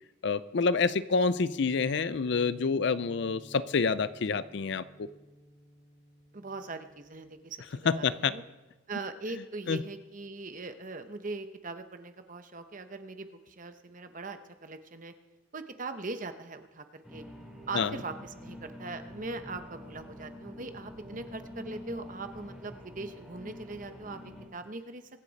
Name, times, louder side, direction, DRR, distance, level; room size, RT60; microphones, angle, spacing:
voice 1, 0.2-5.1 7.8-8.4 9.4-9.8 17.7-18.0, left 5 dB, 55° left, 16 dB, 0.5 m, -28 dB
sound 1, 1.4-8.2, equal, 35° left, 2.9 m, -53 dB
voice 2, 6.3-8.4 8.9-15.1 15.5-17.2 17.7-18.1 18.4-24.2 24.5-25.0, right 3 dB, 40° right, 8 dB, 0.9 m, -40 dB
sound 2, 17.0-24.5, left 1 dB, 5° right, 2.4 m, -46 dB
24.5 x 8.3 x 4.1 m, 1.2 s
head